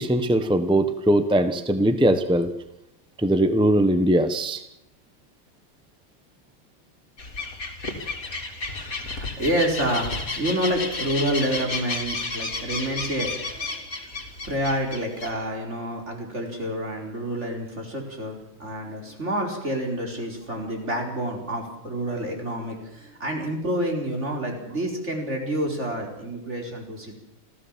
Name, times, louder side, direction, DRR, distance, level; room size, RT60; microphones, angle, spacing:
voice 1, 0.0-2.5 3.2-4.6, right 1 dB, 5° right, 10 dB, 0.5 m, -20 dB
sound 1, 7.2-15.3, left 3 dB, 45° left, 3.4 m, -32 dB
voice 2, 9.0-13.9 14.4-27.1, right 1 dB, 35° right, 2 dB, 4.7 m, -28 dB
27.0 x 15.5 x 7.4 m, 0.83 s
omnidirectional pair, 2.2 m